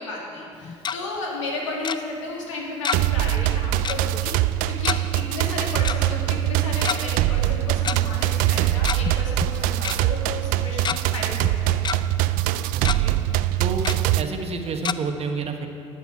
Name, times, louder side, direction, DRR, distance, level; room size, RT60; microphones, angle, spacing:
voice 1, 0.0-4.3 4.7-11.8, left 2 dB, 85° left, -2 dB, 2.1 m, -33 dB
Tick-tock, 0.5-1.0 1.8-2.0 2.8-3.2 3.4-3.5 3.8-4.0 4.8-5.0 5.8-6.0 6.7-7.0 7.8-8.0 8.7-9.1 9.4-9.5 9.8-10.0 10.5-11.0 11.4-12.0 12.4-12.5 12.8-13.0 13.8-14.0 14.8-14.9, left 7 dB, 30° left, 0.4 m, -27 dB
sound 1, 2.9-14.2, right 14 dB, 65° right, 0.4 m, -23 dB
voice 2, 12.7-13.2 13.6-15.7, right 4 dB, 40° right, 5 dB, 1.2 m, -29 dB
12.0 x 8.1 x 4.7 m, 2.6 s
hypercardioid pair, 65°, 16 cm